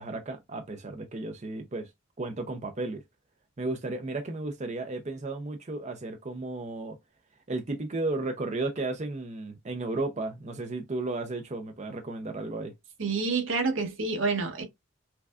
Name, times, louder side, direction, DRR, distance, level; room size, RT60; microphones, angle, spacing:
voice 1, 0.0-1.9 2.2-3.0 3.6-7.0 7.5-12.7, right 2 dB, 35° right, 0.5 m, -34 dB
voice 2, 13.0-14.6, right 4 dB, 80° right, 1.2 m, -28 dB
5.8 x 2.3 x 2.4 m
head